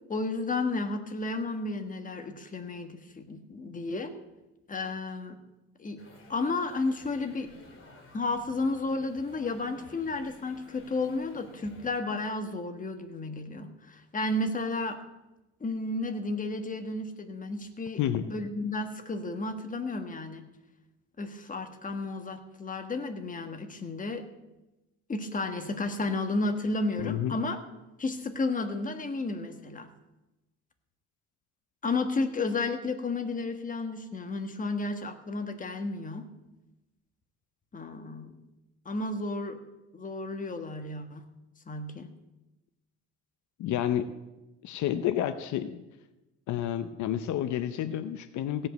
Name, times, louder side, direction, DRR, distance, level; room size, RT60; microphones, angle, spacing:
voice 1, 0.1-4.1 4.7-5.4 5.8-6.0 6.3-7.5 8.1-15.0 15.6-20.5 21.2-24.2 25.1-27.6 28.0-29.9 31.8-36.3 37.7-38.3 38.8-39.6 39.9-41.2 41.7-42.1, left 3 dB, 25° left, 7 dB, 1.4 m, -32 dB
sound 1, 6.0-12.0, left 2 dB, 45° left, 3.3 m, -53 dB
voice 2, 27.0-27.4 43.6-44.1 44.6-45.8 46.5-48.7, left 11 dB, 80° left, 11 dB, 0.8 m, -30 dB
16.5 x 5.6 x 7.8 m, 1.0 s
cardioid pair, 110°, 29 cm